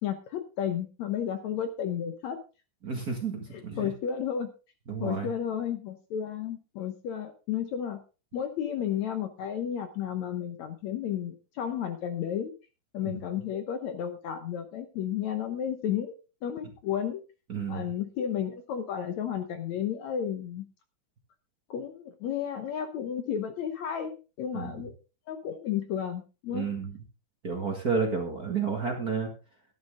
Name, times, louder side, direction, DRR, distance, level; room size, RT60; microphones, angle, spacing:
voice 1, 0.0-2.4 3.5-4.5 5.0-8.0 8.3-12.5 12.9-16.2 16.4-17.2 17.7-20.7 21.7-24.9 25.3-26.7, left 9 dB, 65° left, 8 dB, 2.0 m, -32 dB
voice 2, 2.8-3.9 4.9-5.3 13.0-13.2 17.5-17.9 24.5-24.7 26.5-26.9 27.4-29.3, right 5 dB, 35° right, 2 dB, 1.9 m, -31 dB
12.5 x 11.0 x 3.8 m, 0.32 s
omnidirectional pair, 3.9 m